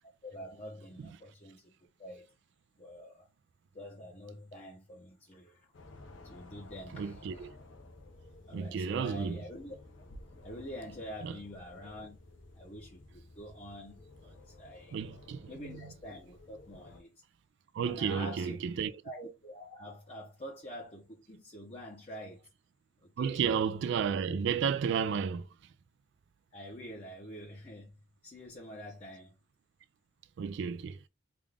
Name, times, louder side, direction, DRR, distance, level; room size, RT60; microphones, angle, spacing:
voice 1, 0.2-2.3 2.8-3.2 3.7-5.7 6.2-7.5 8.5-9.8 10.4-12.2 12.5-15.0 15.5-17.1 17.8-18.6 19.0-22.5 23.2-23.4 26.5-28.0 28.2-29.3, equal, 35° left, 0.8 m, -46 dB
sound 1, 5.7-17.0, left 2 dB, 85° left, 0.7 m, -54 dB
voice 2, 6.9-7.5 8.5-9.4 11.2-11.3 14.9-15.9 17.7-18.9 23.2-25.4 30.4-31.0, right 6 dB, 65° right, 0.3 m, -32 dB
3.5 x 2.4 x 3.4 m
head